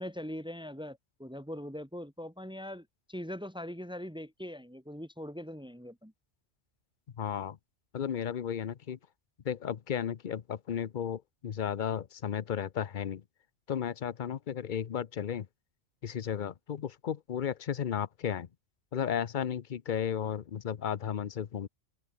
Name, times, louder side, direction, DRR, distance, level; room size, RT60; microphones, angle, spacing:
voice 1, 0.0-6.1, equal, 5° right, 2.7 m, -41 dB
voice 2, 7.2-7.6 7.9-9.0 9.4-13.2 13.7-15.5 16.0-18.5 18.9-21.7, left 8 dB, 50° left, 0.8 m, -34 dB
open air
omnidirectional pair, 1.2 m